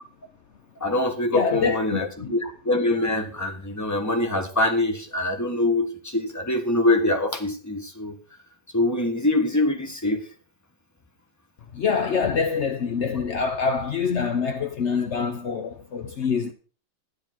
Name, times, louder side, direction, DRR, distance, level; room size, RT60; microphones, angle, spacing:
voice 1, 0.8-8.2 8.7-10.2, left 2 dB, 10° left, 1.2 m, -24 dB
voice 2, 1.3-2.3 11.7-16.5, left 5 dB, 75° left, 0.6 m, -25 dB
12.0 x 10.5 x 4.5 m
omnidirectional pair, 2.3 m